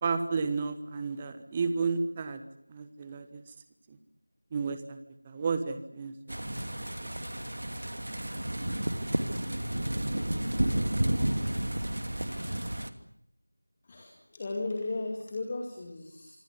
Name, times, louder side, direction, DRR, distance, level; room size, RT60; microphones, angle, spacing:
voice 1, 0.0-2.4 2.7-3.4 3.9-4.0 4.5-5.0 5.2-6.1 6.6-7.1, right 4 dB, 10° right, 10 dB, 1.2 m, -32 dB
sound 1, 6.3-12.9, right 1 dB, 55° right, 2.6 m, -31 dB
voice 2, 13.8-16.4, left 2 dB, 20° left, 2 dB, 2.3 m, -35 dB
26.5 x 22.5 x 8.3 m, 0.69 s
figure-of-eight pair, 170°, 0 cm